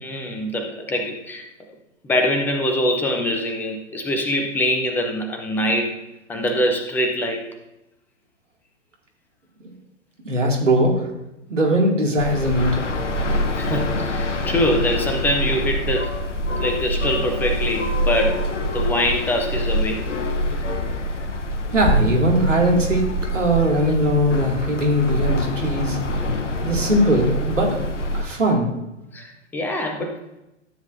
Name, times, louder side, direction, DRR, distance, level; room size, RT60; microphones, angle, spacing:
voice 1, 0.0-1.4 2.0-5.9 6.3-7.5 13.6-16.1 16.5-20.0 29.1-30.2, left 1 dB, 5° left, 4 dB, 0.5 m, -24 dB
voice 2, 10.2-11.1 11.5-12.9 21.7-23.1 23.3-26.0 26.6-27.8 28.1-28.7, equal, 75° right, 0 dB, 2.3 m, -20 dB
sound 1, 12.2-28.2, equal, 70° left, 0.9 m, -25 dB
13.0 x 7.3 x 2.6 m, 0.90 s
figure-of-eight pair, 110°, 37 cm